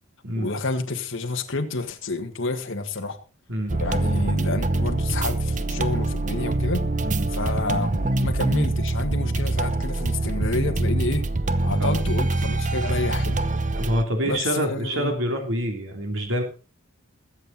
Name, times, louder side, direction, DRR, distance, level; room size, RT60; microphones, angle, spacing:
voice 1, 0.4-3.2 3.8-6.9 7.3-11.3 11.6-13.4 14.2-15.1, left 3 dB, 60° left, 1.6 m, -29 dB
sound 1, 3.7-14.0, right 2 dB, 35° right, 0.8 m, -24 dB
voice 2, 13.7-16.4, equal, 60° right, 3.1 m, -26 dB
21.5 x 7.6 x 4.1 m
head